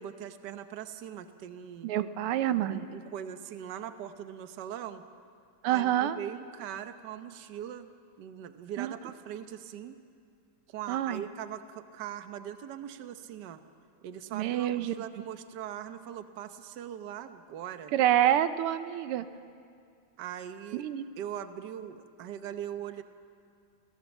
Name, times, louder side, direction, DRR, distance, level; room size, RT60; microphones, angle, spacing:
voice 1, 0.0-1.9 2.6-5.0 5.7-7.9 8.2-10.0 10.7-13.6 14.0-17.9 20.2-20.9 21.2-23.0, right 10 dB, 60° right, 10 dB, 1.4 m, -41 dB
voice 2, 1.8-2.9 5.6-6.2 8.8-8.9 10.9-11.2 14.3-14.9 17.9-19.2 20.7-21.0, right 12 dB, 90° right, 12 dB, 1.7 m, -27 dB
28.0 x 17.0 x 7.2 m, 2.3 s
omnidirectional pair, 2.4 m